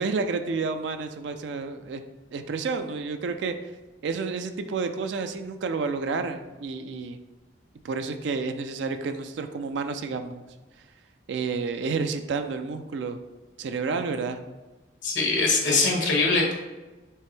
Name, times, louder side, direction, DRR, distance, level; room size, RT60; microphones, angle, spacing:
voice 1, 0.0-2.0 2.3-3.5 4.0-7.2 7.8-10.4 11.3-13.2 13.6-14.4, right 4 dB, 75° right, 7 dB, 0.4 m, -30 dB
voice 2, 15.0-16.5, left 3 dB, 85° left, 0 dB, 1.2 m, -22 dB
4.6 x 3.3 x 3.2 m, 1.2 s
head